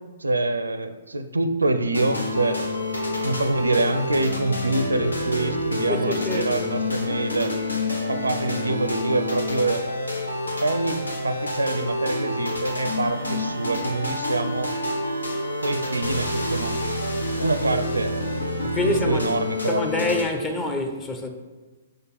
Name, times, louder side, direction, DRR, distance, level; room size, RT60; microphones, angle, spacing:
voice 1, 0.2-2.6 3.2-7.5 8.1-9.8 10.6-11.0 11.2-14.7 15.6-16.7 17.4-18.2 18.8-20.1, right 2 dB, 85° right, 0.5 m, -25 dB
sound 1, 1.9-20.2, left 1 dB, 90° left, 1.0 m, -28 dB
voice 2, 5.9-6.5 18.6-19.3 19.7-21.3, left 2 dB, 20° left, 0.8 m, -26 dB
5.4 x 3.8 x 5.6 m
figure-of-eight pair, 120°, 0 cm